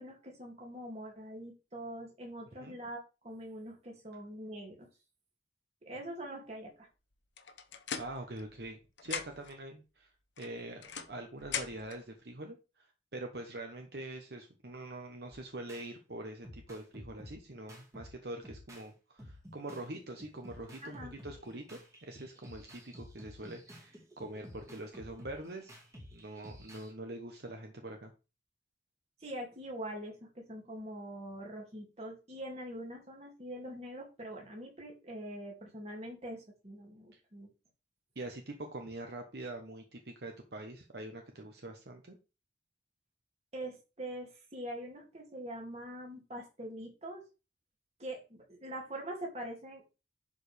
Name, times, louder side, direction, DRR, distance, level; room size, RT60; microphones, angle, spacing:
voice 1, 0.0-4.9 5.8-6.9 20.8-21.1 29.2-37.5 43.5-47.2 48.0-49.9, right 1 dB, 35° right, 0 dB, 2.5 m, -43 dB
sound 1, 7.4-8.7 9.0-9.6 10.4-12.0, left 7 dB, 85° left, 1.0 m, -41 dB
voice 2, 8.0-10.1 10.4-25.8 26.1-28.1 37.1-37.2 38.1-42.2, right 1 dB, 60° right, 3 dB, 1.1 m, -44 dB
sound 2, 15.3-15.9 16.4-18.9 19.2-26.9, equal, 15° right, 2.0 m, -52 dB
11.0 x 4.8 x 3.5 m, 0.30 s
head